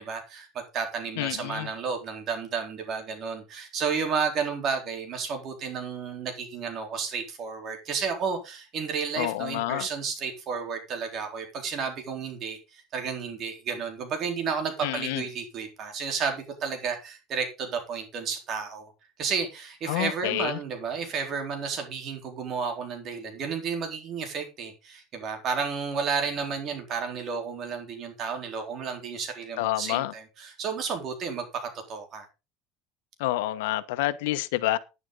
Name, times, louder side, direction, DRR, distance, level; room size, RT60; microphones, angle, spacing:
voice 1, 0.0-18.9 19.2-32.3, right 5 dB, 35° right, 3.9 m, -32 dB
voice 2, 1.2-1.7 9.2-9.9 14.8-15.2 19.9-20.6 29.6-30.1 33.2-34.8, left 16 dB, 90° left, 1.2 m, -28 dB
11.5 x 10.5 x 4.0 m
cardioid pair, 155°, 0 cm